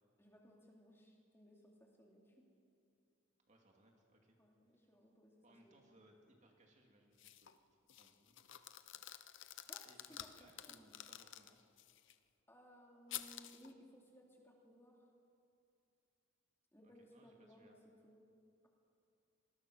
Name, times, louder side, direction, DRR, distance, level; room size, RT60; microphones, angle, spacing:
voice 1, 0.2-2.5 4.4-5.3 5.6-5.8 9.7-10.3 10.6-11.1 12.5-15.1 16.7-18.3, equal, 10° left, -1 dB, 2.8 m, -62 dB
voice 2, 3.5-4.4 4.7-4.9 5.4-8.4 9.8-11.6 16.8-17.7, right 1 dB, 35° right, 1 dB, 2.6 m, -68 dB
sound 1, 7.2-7.6 7.9-12.1 13.1-13.7, left 12 dB, 60° left, 0.8 m, -51 dB
26.0 x 20.5 x 6.4 m, 2.5 s
head